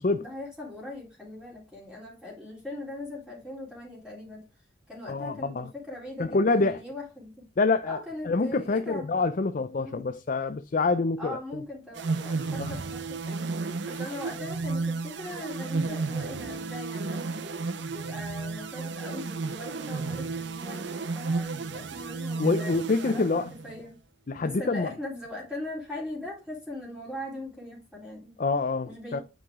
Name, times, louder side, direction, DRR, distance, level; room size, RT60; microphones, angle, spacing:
voice 1, 0.2-4.4 4.9-7.5 7.8-9.2 9.8-10.0 11.2-13.5 13.8-22.8 23.0-23.9 24.4-28.3 28.9-29.2, left 1 dB, 5° right, 3.1 m, -40 dB
voice 2, 5.1-5.6 6.2-6.8 7.6-8.0 8.2-11.4 12.6-12.8 22.4-23.5 24.3-24.9 28.4-29.2, left 3 dB, 40° left, 0.4 m, -26 dB
sound 1, 11.9-23.8, right 3 dB, 60° right, 0.6 m, -33 dB
8.8 x 4.8 x 3.6 m
head